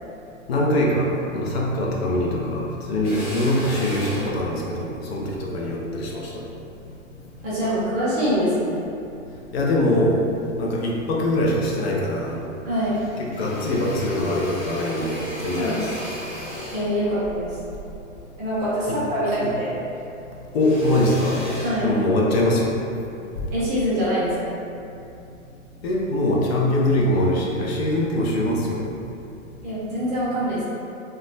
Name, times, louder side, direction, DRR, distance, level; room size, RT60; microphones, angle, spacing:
voice 1, 0.5-6.4 9.5-10.2 10.6-12.4 13.2-15.9 18.9-19.0 19.4-19.6 20.5-21.4 21.8-22.8 25.8-28.8, left 1 dB, 50° left, -3 dB, 0.6 m, -23 dB
Drill, 3.0-7.6 8.1-9.3 9.8-10.7 11.1-11.2 11.4-12.4 12.7-19.4 19.7-22.5, equal, 30° left, 1.2 m, -37 dB
voice 2, 7.4-8.8 12.6-13.0 15.6-15.8 16.7-17.6 18.4-19.8 21.6-21.9 23.5-24.6 29.6-30.6, equal, 15° right, -11 dB, 0.4 m, -24 dB
2.3 x 2.2 x 3.0 m, 2.7 s
hypercardioid pair, 130°, 40 cm